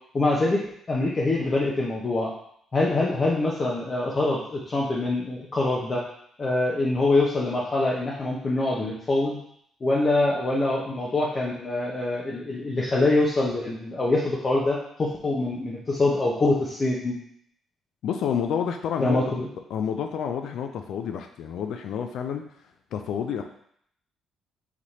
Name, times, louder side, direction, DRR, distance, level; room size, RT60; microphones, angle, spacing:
voice 1, 0.1-2.3 2.7-6.0 6.4-9.4 9.8-17.2 19.0-19.5, left 2 dB, 40° left, -5 dB, 0.9 m, -24 dB
voice 2, 18.0-19.2 19.7-22.4 22.9-23.4, left 8 dB, 75° left, 5 dB, 0.4 m, -29 dB
4.1 x 3.1 x 4.2 m, 0.68 s
supercardioid pair, 60°, 0 cm